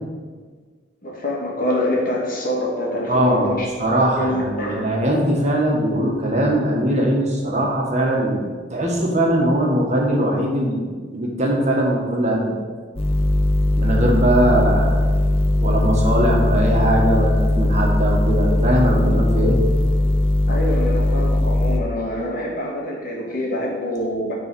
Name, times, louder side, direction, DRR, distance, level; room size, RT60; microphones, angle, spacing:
voice 1, 1.0-3.7 4.2-4.9 20.5-24.3, left 1 dB, 50° left, -2 dB, 2.0 m, -25 dB
voice 2, 3.1-3.5 3.8-12.6 13.8-15.1 15.6-19.6, right 1 dB, 40° right, -2 dB, 1.7 m, -20 dB
sound 1, 13.0-21.8, left 1 dB, 35° left, 0.9 m, -19 dB
9.8 x 4.1 x 6.9 m, 1.5 s
head